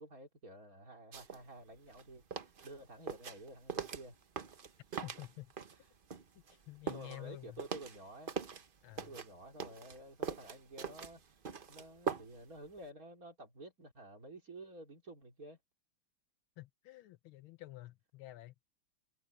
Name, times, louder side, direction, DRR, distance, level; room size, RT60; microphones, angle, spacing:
voice 1, 0.0-4.2 6.9-8.3 9.1-11.2 11.7-15.6, right 1 dB, 40° right, 4.2 m, -51 dB
sound 1, 1.1-1.4 1.7-5.8 6.1-8.7 9.0-12.5 12.8-12.9, right 6 dB, 55° right, 0.5 m, -42 dB
voice 2, 5.0-5.5 6.5-7.6 8.8-9.2 16.6-18.5, left 17 dB, 75° left, 1.5 m, -50 dB
omnidirectional pair, 2.4 m